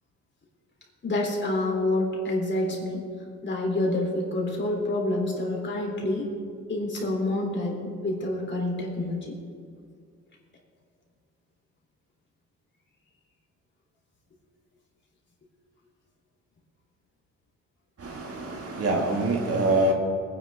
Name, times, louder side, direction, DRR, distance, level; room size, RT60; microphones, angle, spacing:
voice 1, 1.0-3.0 3.4-6.3 6.7-9.3, left 1 dB, 40° left, -1 dB, 3.6 m, -27 dB
voice 2, 18.0-19.9, right 2 dB, 50° right, 1 dB, 2.3 m, -25 dB
20.5 x 10.0 x 3.7 m, 2.2 s
cardioid pair, 90°, 30 cm